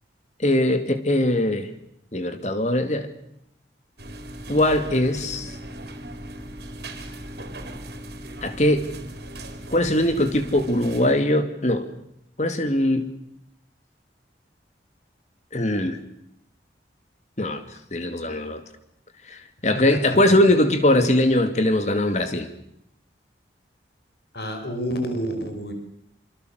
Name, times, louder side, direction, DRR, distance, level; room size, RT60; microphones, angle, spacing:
voice 1, 0.4-1.7 2.1-3.1 4.5-5.5 8.4-8.9 9.7-11.9 12.4-13.1 15.5-16.0 17.4-17.6 17.9-18.6 19.3-22.5, left 1 dB, 40° left, 9 dB, 2.5 m, -21 dB
sound 1, 4.0-11.1, right 1 dB, 65° right, 4.0 m, -38 dB
voice 2, 19.7-20.2 24.3-25.7, equal, 60° left, 5 dB, 4.6 m, -29 dB
27.0 x 25.5 x 6.5 m, 0.73 s
head